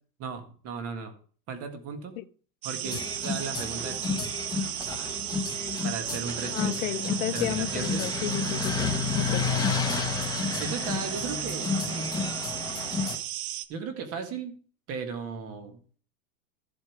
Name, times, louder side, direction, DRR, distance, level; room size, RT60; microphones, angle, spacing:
voice 1, 0.2-1.1 1.5-2.2 2.6-4.3 5.8-6.8 7.3-8.1 9.3-9.7 10.6-12.1 13.7-14.6 14.9-15.8, right 5 dB, 30° right, 1.8 m, -36 dB
sound 1, 2.6-13.7, right 13 dB, 70° right, 1.2 m, -35 dB
sound 2, 2.8-13.2, left 5 dB, 10° left, 1.3 m, -31 dB
voice 2, 6.5-8.9 9.2-9.5, left 15 dB, 60° left, 0.9 m, -32 dB
13.5 x 8.1 x 4.8 m
supercardioid pair, 160°, 47 cm